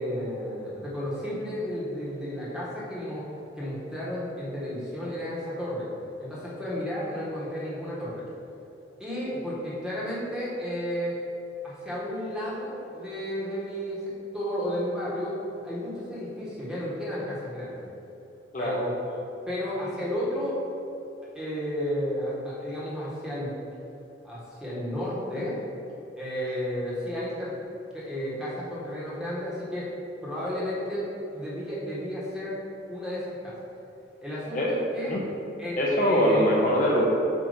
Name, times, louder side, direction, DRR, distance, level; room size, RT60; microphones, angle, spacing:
voice 1, 0.0-3.3 3.6-5.9 6.2-8.2 9.0-11.2 11.6-15.3 15.6-17.9 18.6-19.2 19.5-20.6 21.3-23.5 24.2-25.6 26.2-27.6 27.9-29.9 30.2-32.6 32.9-33.5 34.2-35.1 35.6-36.5, equal, 5° right, -8 dB, 1.5 m, -32 dB
voice 2, 35.8-37.1, equal, 45° left, -3 dB, 0.8 m, -22 dB
8.2 x 2.9 x 5.1 m, 2.9 s
head